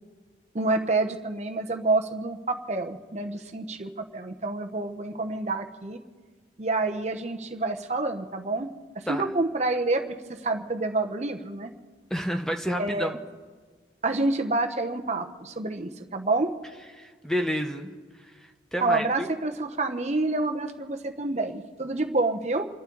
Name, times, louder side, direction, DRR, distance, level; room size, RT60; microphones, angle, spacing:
voice 1, 0.5-6.0 6.6-8.7 8.9-10.2 10.4-11.7 12.8-13.2 14.0-16.5 18.8-22.7, right 2 dB, 35° right, 5 dB, 1.0 m, -28 dB
voice 2, 12.1-13.2 16.9-17.9 18.2-19.3, equal, 5° left, 4 dB, 0.8 m, -30 dB
29.0 x 12.0 x 3.9 m, 1.5 s
head